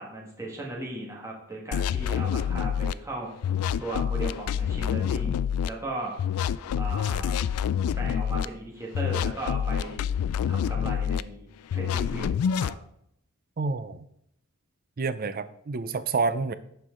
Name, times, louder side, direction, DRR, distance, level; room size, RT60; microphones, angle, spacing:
voice 1, 0.0-3.3 3.8-5.3 5.6-6.2 6.8-7.5 7.9-10.1 10.5-12.7, right 2 dB, 15° right, -3 dB, 1.6 m, -37 dB
sound 1, 1.7-2.9 3.4-5.7 6.2-8.5 8.9-11.2 11.7-12.7, left 8 dB, 80° left, 0.3 m, -27 dB
voice 2, 13.6-14.0 15.0-16.5, right 4 dB, 40° right, 13 dB, 0.4 m, -28 dB
11.0 x 4.6 x 3.7 m, 0.74 s
head